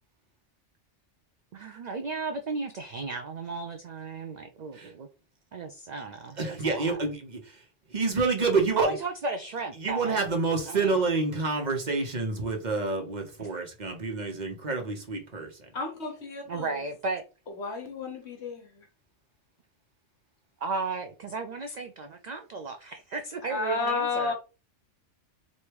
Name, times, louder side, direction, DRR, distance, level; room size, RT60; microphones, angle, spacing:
voice 1, 1.5-5.1 5.5-7.0 8.8-10.3 10.7-11.0 13.4-13.5 16.5-17.2 20.6-24.3, right 3 dB, 60° right, 0.4 m, -35 dB
voice 2, 6.4-7.6 7.9-8.9 9.8-15.5, right 4 dB, 40° right, 1.0 m, -28 dB
voice 3, 15.7-16.8 17.6-18.9 23.5-24.3, left 4 dB, 65° left, 1.3 m, -32 dB
3.3 x 2.7 x 4.6 m
omnidirectional pair, 1.3 m